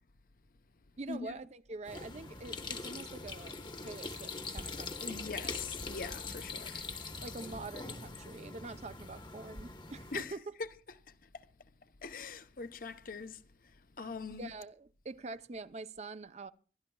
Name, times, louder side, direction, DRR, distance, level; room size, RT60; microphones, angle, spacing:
voice 1, 1.0-5.2 7.2-10.4 14.4-16.5, right 3 dB, 40° right, 0.6 m, -45 dB
sound 1, 1.9-10.2, left 3 dB, 25° left, 1.0 m, -43 dB
voice 2, 5.0-6.9 10.1-10.7 11.1-11.5 11.8-14.5, left 4 dB, 50° left, 0.7 m, -43 dB
25.0 x 12.5 x 2.3 m
head